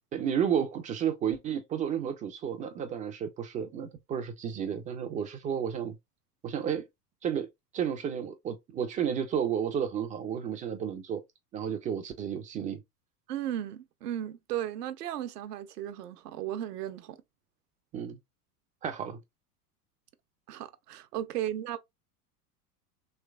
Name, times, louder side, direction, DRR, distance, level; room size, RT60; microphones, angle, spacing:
voice 1, 0.1-6.0 6.4-6.8 7.2-7.5 7.7-11.2 11.5-12.8 17.9-18.2 18.8-19.2, right 8 dB, 20° right, 0.3 m, -32 dB
voice 2, 13.3-17.2 20.5-21.8, right 11 dB, 80° right, 0.7 m, -35 dB
3.2 x 3.0 x 2.3 m
hypercardioid pair, 95°, 46 cm